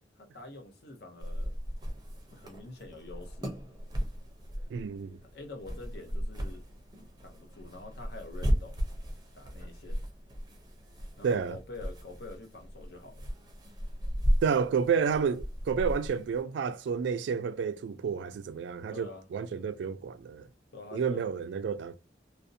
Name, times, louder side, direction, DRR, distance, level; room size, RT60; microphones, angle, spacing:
voice 1, 0.2-1.5 2.3-3.5 5.3-6.6 7.2-8.8 9.3-10.0 11.2-13.3 18.9-19.2 19.6-19.7 20.7-21.2, left 2 dB, 65° left, 0.7 m, -46 dB
sound 1, 1.2-16.4, equal, 25° right, 0.5 m, -35 dB
voice 2, 4.7-5.2 11.2-11.6 14.4-20.5 20.9-22.0, right 6 dB, 90° right, 0.3 m, -30 dB
2.5 x 2.0 x 2.6 m
head